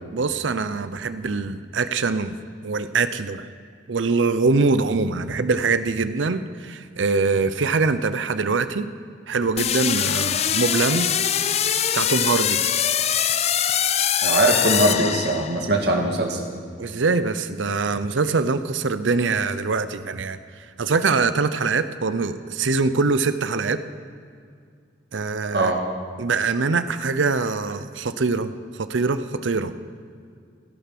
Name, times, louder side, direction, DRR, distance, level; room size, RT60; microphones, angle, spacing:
voice 1, 0.1-2.3 2.6-3.4 3.9-8.9 9.3-11.1 11.9-12.6 16.8-20.4 20.8-23.8 25.1-25.7 26.2-28.5 28.8-29.7, right 4 dB, 85° right, 12 dB, 0.7 m, -23 dB
sound 1, 9.6-15.8, left 9 dB, 35° left, 0.4 m, -23 dB
voice 2, 14.2-16.4 25.5-25.8, right 1 dB, 60° right, 2 dB, 1.8 m, -21 dB
16.5 x 10.5 x 6.0 m, 2.2 s
head